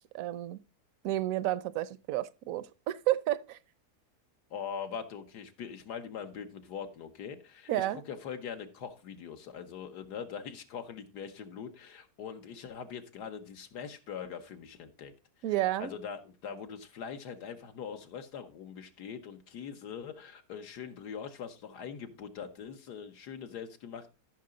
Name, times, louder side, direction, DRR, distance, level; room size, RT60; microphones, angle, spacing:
voice 1, 0.1-0.6 1.0-3.6 7.7-8.0 15.4-15.9, right 14 dB, 65° right, 0.9 m, -31 dB
voice 2, 4.5-15.1 15.8-24.1, left 7 dB, 80° left, 1.7 m, -42 dB
14.0 x 5.8 x 3.8 m
omnidirectional pair, 1.7 m